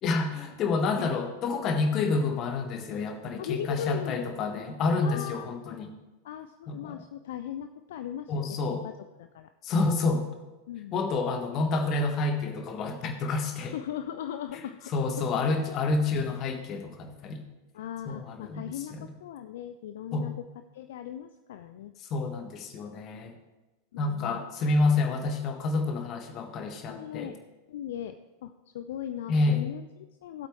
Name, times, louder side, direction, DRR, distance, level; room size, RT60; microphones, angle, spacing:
voice 1, 0.0-5.9 6.7-7.0 8.3-8.8 9.6-10.3 10.9-13.7 14.5-14.6 14.9-17.4 18.0-19.0 20.1-20.3 22.1-23.3 24.0-27.3 29.3-29.6, left 3 dB, 35° left, 6 dB, 1.4 m, -28 dB
voice 2, 3.4-4.2 5.0-5.8 6.2-8.6 8.8-8.9 9.2-9.5 10.7-11.1 13.6-14.9 16.1-16.2 17.7-20.4 20.7-21.9 23.1-23.3 23.9-24.4 26.9-27.3 27.7-30.5, left 10 dB, 55° left, 9 dB, 0.5 m, -38 dB
17.5 x 8.1 x 3.2 m, 1.1 s
figure-of-eight pair, 90°, 0 cm